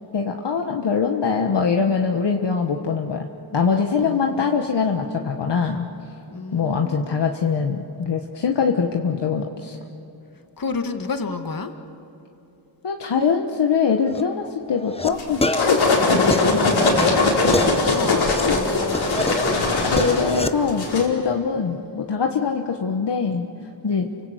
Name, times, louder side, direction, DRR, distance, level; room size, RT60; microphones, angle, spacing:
voice 1, 0.1-5.9 6.5-9.8 12.8-16.6 18.1-18.6 19.9-23.5 23.8-24.1, left 6 dB, 65° left, 2 dB, 1.5 m, -23 dB
voice 2, 4.0-4.5 6.3-7.2 10.6-11.7 16.0-20.3 23.9-24.1, left 4 dB, 50° left, 6 dB, 2.1 m, -32 dB
sound 1, 14.0-14.2 14.7-15.1 15.4-18.5 18.9-20.5, left 2 dB, 15° left, 1.0 m, -27 dB
sound 2, 15.2-21.1, left 3 dB, 80° left, 5.0 m, -20 dB
29.0 x 25.0 x 8.3 m, 2.9 s
cardioid pair, 70°, 45 cm